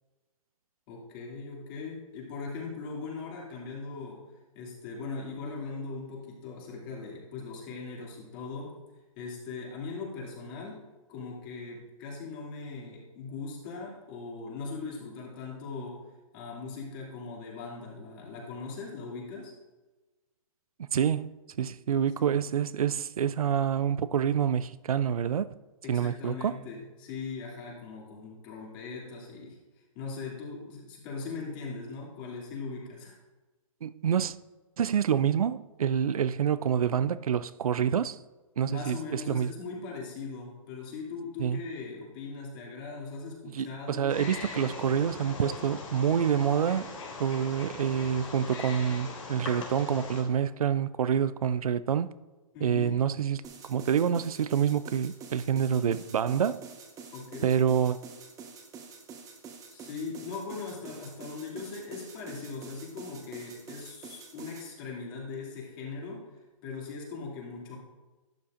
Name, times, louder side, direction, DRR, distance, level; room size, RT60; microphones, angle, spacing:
voice 1, 0.9-4.2 4.5-8.8 9.2-10.8 11.1-16.0 16.3-19.5 22.2-22.3 25.8-29.6 29.9-33.2 36.0-36.1 38.7-44.2 52.5-53.0 57.1-57.5 59.7-66.2 66.6-67.8, left 4 dB, 40° left, 2.6 m, -40 dB
voice 2, 20.9-21.3 21.6-25.5 25.9-26.6 33.8-34.3 34.8-38.2 38.6-39.5 41.4-41.6 43.5-46.9 47.2-52.1 52.6-56.6 57.4-58.0, right 8 dB, 90° right, 0.4 m, -27 dB
Wild animals, 44.1-50.2, left 3 dB, 65° left, 3.2 m, -40 dB
sound 1, 53.4-64.7, right 5 dB, 20° right, 1.2 m, -47 dB
11.5 x 8.5 x 2.6 m
hypercardioid pair, 135°, 18 cm